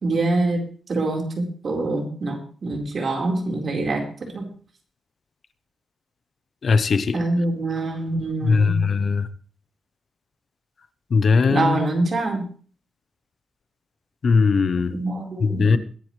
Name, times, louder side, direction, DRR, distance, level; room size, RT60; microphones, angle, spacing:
voice 1, 0.0-4.1 4.3-4.5 7.1-8.8 11.5-12.4 14.9-15.8, right 2 dB, 50° right, 4.3 m, -25 dB
voice 2, 6.6-7.2 8.4-9.3 11.1-11.8 14.2-15.0 15.4-15.8, left 4 dB, 55° left, 0.9 m, -19 dB
21.5 x 10.5 x 3.3 m
cardioid pair, 110°, 0 cm